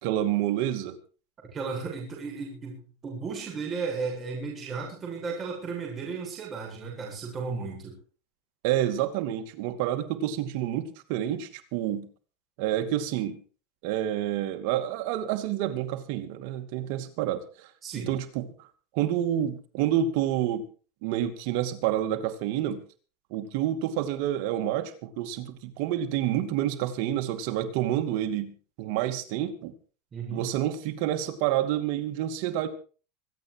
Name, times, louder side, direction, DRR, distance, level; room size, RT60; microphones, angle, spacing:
voice 1, 0.0-1.0 8.6-12.1 12.6-13.4 13.8-17.7 18.1-18.7 18.9-20.6 21.0-22.8 23.3-29.7 30.3-32.7, right 11 dB, 60° right, 8 dB, 2.5 m, -28 dB
voice 2, 1.5-8.0 17.8-18.1 30.1-30.4, right 5 dB, 25° right, -1 dB, 7.6 m, -34 dB
25.5 x 8.9 x 4.8 m, 0.38 s
supercardioid pair, 135°, 0 cm